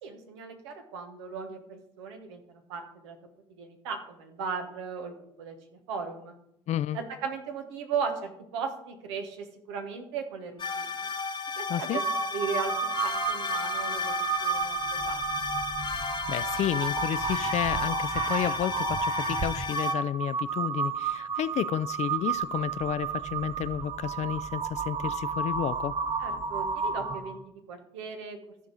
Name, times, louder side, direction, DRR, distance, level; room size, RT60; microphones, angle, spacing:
voice 1, 0.0-2.4 2.7-3.2 3.6-5.6 5.9-6.4 6.9-11.1 11.6-11.9 12.3-12.7 13.0-14.1 14.4-15.4 26.2-28.4, right 5 dB, 85° right, 1.2 m, -37 dB
voice 2, 6.7-7.0 11.7-12.0 16.0-25.9, left 11 dB, 50° left, 0.4 m, -31 dB
sound 1, 10.6-19.9, left 5 dB, 30° left, 1.2 m, -33 dB
Crow, 11.9-27.4, right 6 dB, 40° right, 0.7 m, -32 dB
14.0 x 4.7 x 4.0 m
hypercardioid pair, 55°, 15 cm